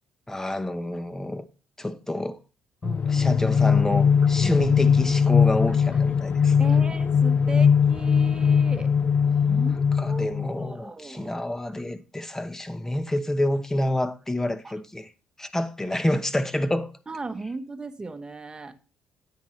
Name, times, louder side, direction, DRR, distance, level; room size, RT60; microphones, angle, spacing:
voice 1, 0.3-1.4 1.8-2.4 3.1-6.6 10.0-15.1 15.4-16.9, left 1 dB, 10° left, 0.9 m, -28 dB
sound 1, 2.8-10.7, left 6 dB, 40° left, 0.4 m, -20 dB
voice 2, 2.8-3.3 4.4-4.7 5.7-5.8 6.6-8.9 9.2-11.4 14.6-14.7 17.1-18.7, right 3 dB, 20° right, 1.1 m, -37 dB
9.8 x 8.9 x 3.2 m
cardioid pair, 110°, 4 cm